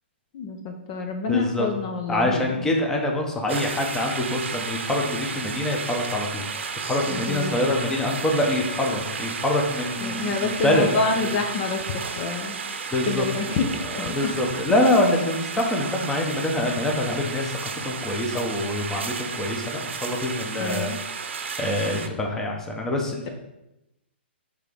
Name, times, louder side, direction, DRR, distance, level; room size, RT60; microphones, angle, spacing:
voice 1, 0.3-2.7 7.1-7.6 10.0-12.6 13.1-14.3 20.6-21.0, left 4 dB, 35° left, 3 dB, 0.7 m, -28 dB
voice 2, 1.3-1.7 2.1-10.9 11.2-11.3 12.9-13.3 13.5-13.6 14.0-17.6 17.8-20.9 21.6-23.3, left 1 dB, 5° left, 0 dB, 0.9 m, -25 dB
sound 1, 3.5-22.1, right 5 dB, 75° right, 0.8 m, -33 dB
6.6 x 3.6 x 5.2 m, 0.89 s
hypercardioid pair, 155°, 6 cm